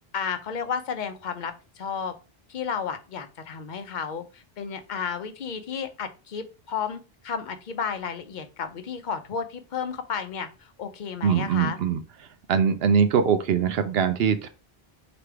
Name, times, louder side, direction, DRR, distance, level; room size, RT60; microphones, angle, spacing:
voice 1, 0.1-2.1 2.5-11.8, left 6 dB, 55° left, 9 dB, 0.7 m, -32 dB
voice 2, 11.2-12.0 12.5-14.5, right 7 dB, 75° right, 10 dB, 0.8 m, -22 dB
3.3 x 3.0 x 4.5 m, 0.32 s
omnidirectional pair, 1.0 m